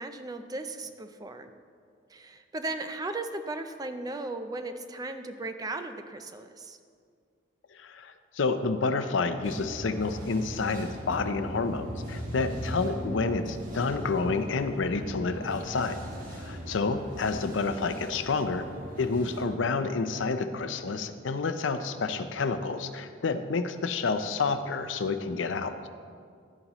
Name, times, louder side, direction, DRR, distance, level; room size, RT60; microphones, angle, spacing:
voice 1, 0.0-1.5 2.1-6.8, right 2 dB, 20° right, 8 dB, 0.4 m, -36 dB
voice 2, 7.7-16.0 16.3-18.7 19.0-25.7, left 4 dB, 80° left, 9 dB, 0.5 m, -29 dB
sound 1, 9.4-19.5, equal, 45° right, 1.5 m, -39 dB
11.5 x 9.4 x 3.0 m, 2.2 s
head